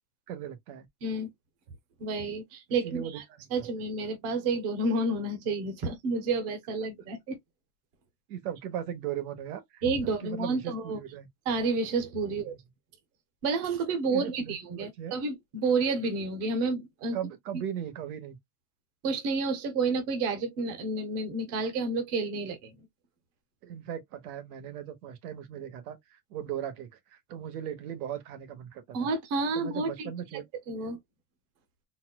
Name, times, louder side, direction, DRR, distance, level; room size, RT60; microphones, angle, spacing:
voice 1, 0.3-0.9 2.8-3.7 8.3-11.3 12.3-12.6 14.1-15.2 17.1-18.4 23.6-29.1 29.5-30.5, right 10 dB, 80° right, 1.2 m, -38 dB
voice 2, 2.0-3.2 3.5-7.4 9.8-11.0 11.5-12.5 13.4-17.1 19.0-22.7 28.9-30.1 30.7-31.0, right 3 dB, 35° right, 0.9 m, -30 dB
4.2 x 2.3 x 2.2 m
supercardioid pair, 175°, 44 cm